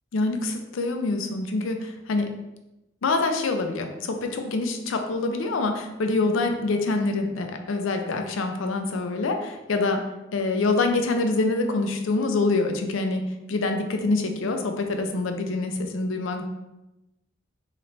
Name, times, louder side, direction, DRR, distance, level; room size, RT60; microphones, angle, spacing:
voice 1, 0.1-2.4 3.0-16.4, left 3 dB, 75° left, 5 dB, 0.5 m, -26 dB
3.2 x 3.0 x 4.0 m, 0.98 s
head